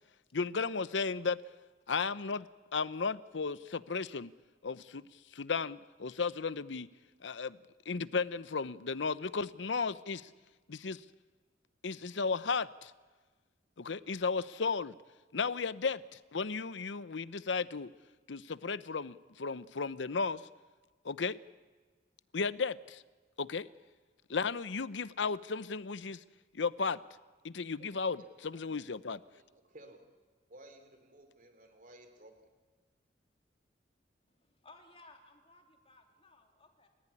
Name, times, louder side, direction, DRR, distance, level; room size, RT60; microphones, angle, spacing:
voice 1, 0.3-1.4 1.9-4.3 4.6-5.0 5.3-6.9 7.2-7.6 7.9-10.3 10.7-11.0 11.8-12.9 13.8-15.0 15.3-17.9 18.3-20.4 21.0-21.4 22.3-23.0 23.4-23.7 24.3-26.2 26.5-27.0 27.4-29.2, left 4 dB, 90° left, 16 dB, 0.8 m, -34 dB
voice 2, 28.2-28.6 29.1-30.0 30.5-32.3, right 1 dB, 50° right, 7 dB, 3.5 m, -56 dB
voice 3, 34.4-36.9, left 2 dB, 35° left, 3 dB, 3.3 m, -59 dB
30.0 x 15.0 x 9.9 m, 1.3 s
head